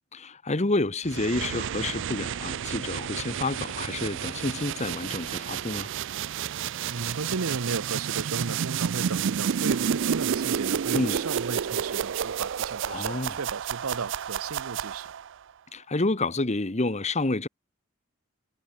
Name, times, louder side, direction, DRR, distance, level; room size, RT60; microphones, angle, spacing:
voice 1, 0.1-5.9 10.9-11.2 12.9-13.4 15.7-17.5, left 2 dB, 30° left, 1.2 m, -29 dB
sound 1, 1.0-15.3, right 8 dB, 60° right, 0.4 m, -30 dB
voice 2, 6.9-15.1, right 4 dB, 80° right, 0.8 m, -34 dB
head